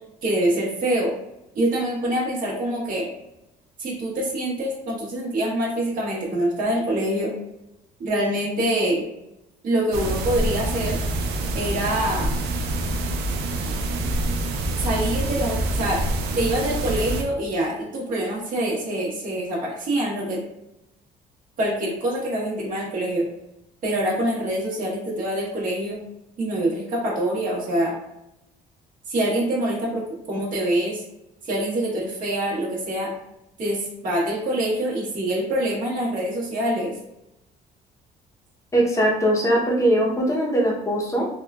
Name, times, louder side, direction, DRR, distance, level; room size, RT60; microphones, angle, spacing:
voice 1, 0.2-1.1 1.5-3.1 3.8-7.3 8.0-9.0 9.6-11.0 11.5-12.3 14.8-16.0 16.3-20.4 21.6-23.2 23.8-26.0 26.4-27.9 29.1-31.0 31.4-33.1 33.6-36.9, right 1 dB, 55° right, -5 dB, 1.4 m, -25 dB
sound 1, 9.9-17.2, right 2 dB, 80° right, 0.5 m, -26 dB
voice 2, 38.7-41.3, right 1 dB, 15° left, -2 dB, 0.8 m, -21 dB
3.5 x 2.4 x 2.3 m, 0.86 s
cardioid pair, 110°, 17 cm